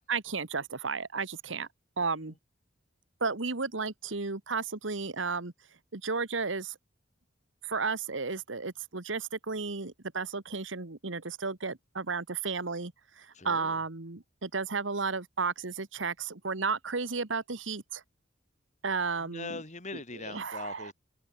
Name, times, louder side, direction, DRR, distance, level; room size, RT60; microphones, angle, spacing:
voice 1, 0.0-1.7 2.0-2.3 3.2-5.5 5.9-6.8 7.6-18.0 18.8-19.6 20.2-20.9, right 4 dB, 80° right, 1.7 m, -33 dB
voice 2, 2.0-2.3 13.3-13.8 19.2-20.9, left 3 dB, 40° left, 3.4 m, -42 dB
head